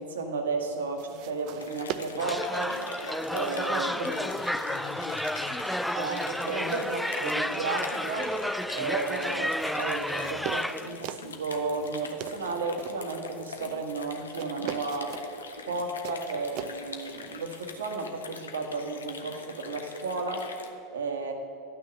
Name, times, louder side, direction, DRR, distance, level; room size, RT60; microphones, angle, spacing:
voice 1, 0.0-2.8 3.3-4.0 5.9-8.3 8.7-15.2 15.7-20.5 20.9-21.3, right 3 dB, 75° right, 1.4 m, -33 dB
sound 1, 0.9-17.9, right 10 dB, 55° right, 0.5 m, -45 dB
sound 2, 1.5-20.7, left 4 dB, 85° left, 0.9 m, -43 dB
sound 3, 2.2-11.0, equal, ahead, 0.3 m, -31 dB
voice 2, 3.9-5.7, left 8 dB, 40° left, 0.7 m, -41 dB
12.0 x 6.1 x 7.8 m
hypercardioid pair, 85°, 0 cm